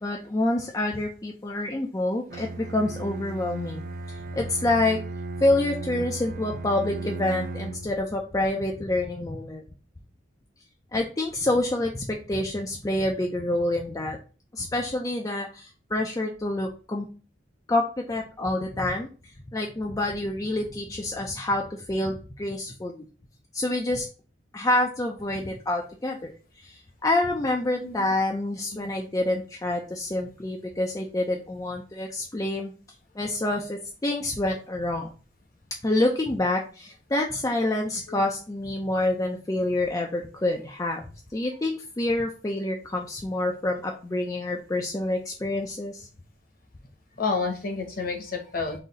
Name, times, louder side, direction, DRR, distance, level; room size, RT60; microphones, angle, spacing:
voice 1, 0.0-5.0 5.4-9.6 10.9-14.2 14.5-17.1 17.7-23.1 23.5-24.1 24.5-26.3 26.6-32.7 33.1-35.1 35.8-41.0 41.3-46.1, left 1 dB, 20° left, 1 dB, 0.4 m, -27 dB
Bowed string instrument, 2.3-8.0, right 3 dB, 45° right, 0.4 m, -35 dB
voice 2, 27.8-28.1 28.7-28.9 38.1-38.2 47.2-48.8, left 4 dB, 50° left, 1 dB, 1.0 m, -30 dB
3.9 x 2.7 x 3.9 m, 0.35 s
head